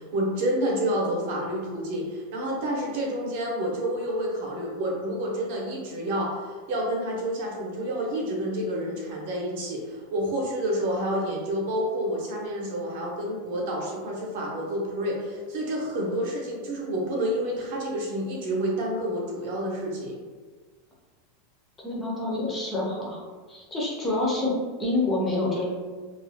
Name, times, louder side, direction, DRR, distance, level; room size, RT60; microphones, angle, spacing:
voice 1, 0.0-20.2, right 1 dB, 55° right, -2 dB, 0.6 m, -29 dB
voice 2, 21.8-23.2 23.5-25.7, left 2 dB, 10° left, -4 dB, 0.4 m, -27 dB
2.3 x 2.1 x 2.6 m, 1.5 s
supercardioid pair, 175°, 0 cm